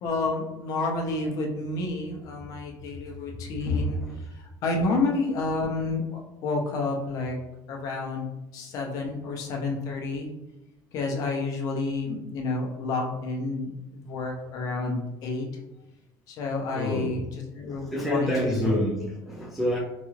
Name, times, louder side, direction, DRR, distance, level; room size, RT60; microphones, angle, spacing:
voice 1, 0.0-7.4 7.7-10.3 10.9-15.5 16.3-17.3 17.5-18.7, left 3 dB, 40° left, 1 dB, 0.6 m, -30 dB
voice 2, 16.7-17.2 17.8-19.8, left 1 dB, ahead, -4 dB, 0.3 m, -28 dB
3.9 x 2.4 x 3.1 m, 0.95 s
cardioid pair, 180°, 9 cm